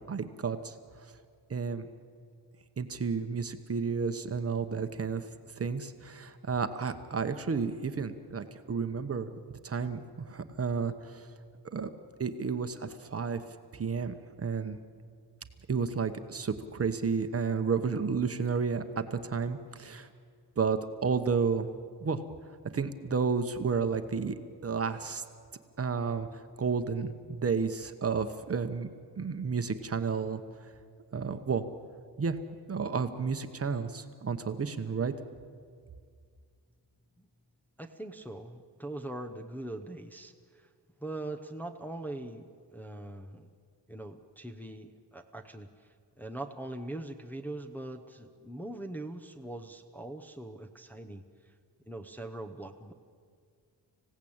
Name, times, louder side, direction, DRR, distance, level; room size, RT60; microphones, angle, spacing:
voice 1, 0.1-0.7 1.5-1.9 2.8-5.2 5.6-11.3 11.6-11.9 12.2-13.4 13.7-14.8 15.7-20.1 20.6-21.7 22.0-22.2 22.7-25.2 25.8-26.3 26.6-28.9 29.2-30.4 31.1-31.6 32.2-32.4 32.7-35.1, right 5 dB, 35° right, 8 dB, 1.0 m, -31 dB
voice 2, 37.8-40.7 41.0-43.5 43.9-51.3 51.9-52.9, right 1 dB, 5° left, 2 dB, 0.8 m, -42 dB
26.0 x 16.5 x 8.7 m, 2.1 s
wide cardioid pair, 175°, 42 cm